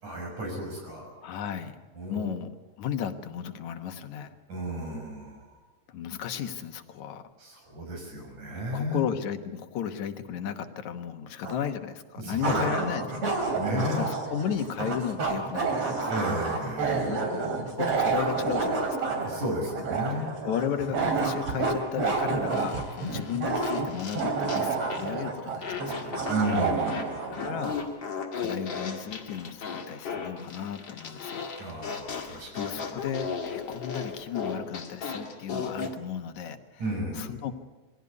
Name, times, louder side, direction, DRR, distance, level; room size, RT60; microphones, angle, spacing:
voice 1, 0.0-1.1 1.9-2.3 4.5-5.5 7.4-9.0 12.2-12.6 13.5-14.0 16.1-17.2 19.2-20.4 26.3-27.5 31.6-32.9 36.8-37.4, equal, 85° right, 1 dB, 7.9 m, -33 dB
voice 2, 1.2-1.8 2.1-2.5 2.8-4.4 5.9-7.2 8.7-13.4 14.0-16.1 17.1-17.5 17.7-19.1 20.2-26.1 27.3-27.8 28.3-31.5 32.3-36.8 37.1-37.5, left 8 dB, 75° left, 8 dB, 2.5 m, -34 dB
sound 1, 11.4-11.5 12.4-27.8, right 4 dB, 60° right, 4.0 m, -29 dB
Fart, 22.5-25.2 25.6-36.0, left 5 dB, 40° left, 2.5 m, -36 dB
22.5 x 16.5 x 9.6 m, 1.2 s
omnidirectional pair, 3.4 m